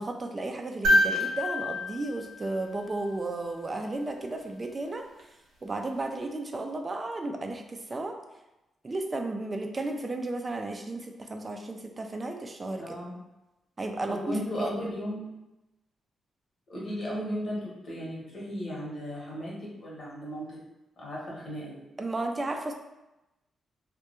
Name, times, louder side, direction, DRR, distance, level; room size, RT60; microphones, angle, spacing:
voice 1, 0.0-5.0 5.6-8.2 8.8-13.0 13.8-14.7 22.0-22.7, right 2 dB, 35° right, 4 dB, 0.4 m, -34 dB
sound 1, 0.8-3.2 5.2-5.3, left 1 dB, 80° right, 0.6 m, -27 dB
voice 2, 12.8-13.1 14.1-15.3 16.7-20.5 21.0-21.8, equal, 60° left, -5 dB, 1.0 m, -35 dB
2.2 x 2.2 x 2.9 m, 0.97 s
supercardioid pair, 60°, 0 cm